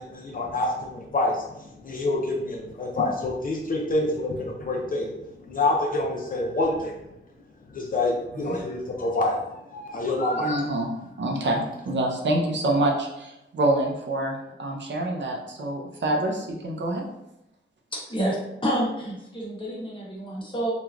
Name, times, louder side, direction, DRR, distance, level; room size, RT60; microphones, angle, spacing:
voice 1, 0.0-5.1 5.4-6.9 7.7-10.7, left 2 dB, 40° left, -1 dB, 0.4 m, -27 dB
voice 2, 10.4-10.9 11.2-17.0, right 1 dB, 60° right, 0 dB, 0.5 m, -26 dB
voice 3, 17.9-18.4 18.6-20.7, right 1 dB, 25° left, -5 dB, 0.9 m, -28 dB
3.1 x 2.2 x 2.4 m, 0.87 s
wide cardioid pair, 140°, 21 cm